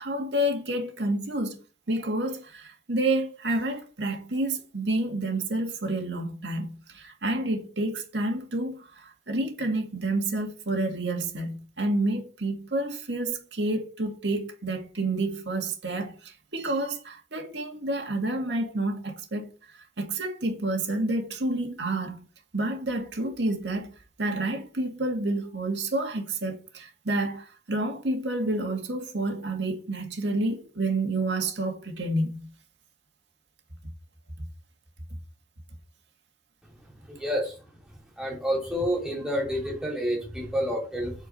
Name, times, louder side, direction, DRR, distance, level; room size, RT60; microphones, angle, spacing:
voice 1, 0.0-1.6 1.9-19.5 20.0-22.3 22.5-23.9 24.2-32.5, right 2 dB, 90° right, 2.0 m, -29 dB
voice 2, 37.1-37.6 38.2-41.1, equal, 5° right, 2.9 m, -29 dB
8.4 x 4.7 x 6.8 m
head